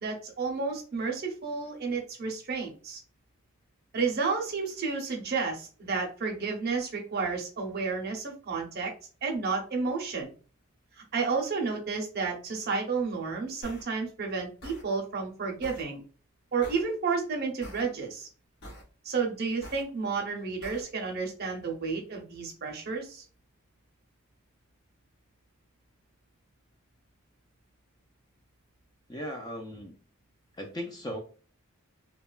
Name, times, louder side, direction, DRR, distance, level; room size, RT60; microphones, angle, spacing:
voice 1, 0.0-3.0 3.9-8.9 9.2-10.3 11.1-16.0 16.5-18.3 19.0-23.2, right 4 dB, 50° right, 1 dB, 0.6 m, -31 dB
sound 1, 13.6-13.8 14.6-14.8 15.6-15.8 16.6-16.8 17.6-17.8 18.6-18.8 19.6-19.8 20.6-20.8, equal, 50° left, 0.8 m, -44 dB
voice 2, 29.1-29.9 30.6-31.2, equal, 20° left, 3 dB, 0.4 m, -37 dB
2.8 x 2.2 x 2.3 m, 0.38 s
head